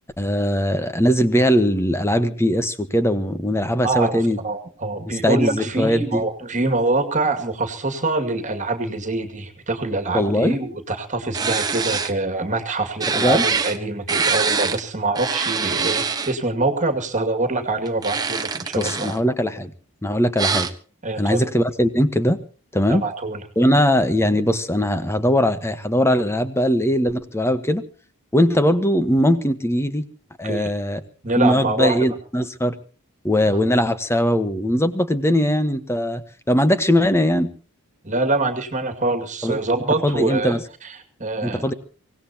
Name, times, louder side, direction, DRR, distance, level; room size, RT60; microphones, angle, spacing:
voice 1, 0.2-4.4 5.1-6.2 10.1-10.5 13.1-13.4 18.8-19.7 20.0-20.7 21.2-22.4 22.7-23.0 23.6-27.8 28.3-30.0 30.4-31.0 31.4-32.8 33.2-36.2 36.5-37.5 39.4-39.6 40.0-40.6 41.4-41.7, equal, 10° left, 11 dB, 1.2 m, -20 dB
voice 2, 3.8-19.2 21.0-21.4 22.9-23.4 23.7-23.8 30.4-30.7 31.2-32.0 38.0-41.7, right 2 dB, 35° right, 6 dB, 2.3 m, -25 dB
sound 1, 11.3-12.1 13.0-13.8 14.1-14.8 15.1-16.3 17.9-19.2 20.4-20.7, right 5 dB, 15° right, 1.1 m, -24 dB
24.5 x 18.0 x 2.9 m, 0.39 s
head